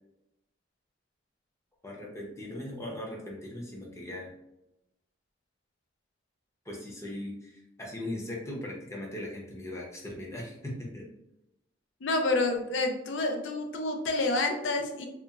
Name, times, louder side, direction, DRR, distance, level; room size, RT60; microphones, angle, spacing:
voice 1, 1.8-4.3 6.7-11.1, left 1 dB, 15° left, -2 dB, 0.6 m, -39 dB
voice 2, 12.0-15.1, left 2 dB, 80° left, 4 dB, 0.5 m, -28 dB
2.4 x 2.4 x 2.8 m, 0.88 s
head